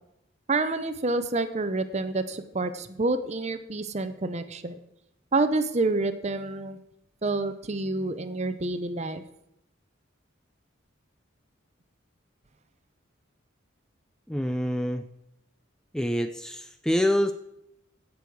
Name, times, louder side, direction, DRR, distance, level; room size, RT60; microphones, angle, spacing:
voice 1, 0.5-4.8 5.3-6.8 7.2-9.2, right 2 dB, 35° right, 11 dB, 0.7 m, -28 dB
voice 2, 14.3-15.0 15.9-17.3, equal, 5° left, 8 dB, 0.3 m, -26 dB
16.0 x 6.3 x 4.7 m, 0.83 s
head